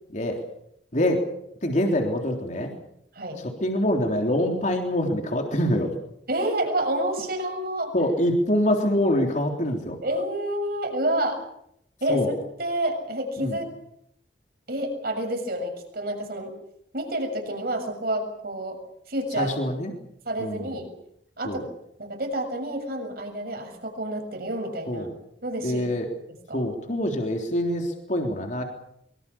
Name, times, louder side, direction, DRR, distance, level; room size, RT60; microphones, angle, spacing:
voice 1, 0.9-1.3 1.6-2.7 3.4-5.9 7.9-10.0 12.1-12.3 13.4-13.6 19.4-19.9 20.4-20.8 21.4-21.6 24.9-25.1 25.6-26.1 26.5-28.6, left 1 dB, 45° left, 3 dB, 3.6 m, -25 dB
voice 2, 6.3-7.9 10.0-11.4 12.0-12.2 12.6-13.7 14.7-16.5 16.9-18.8 19.1-19.6 20.3-20.9 21.4-21.7 22.0-25.1 25.4-25.9 26.5-26.7, right 1 dB, 55° right, 5 dB, 6.9 m, -29 dB
24.0 x 24.0 x 7.2 m, 0.73 s
head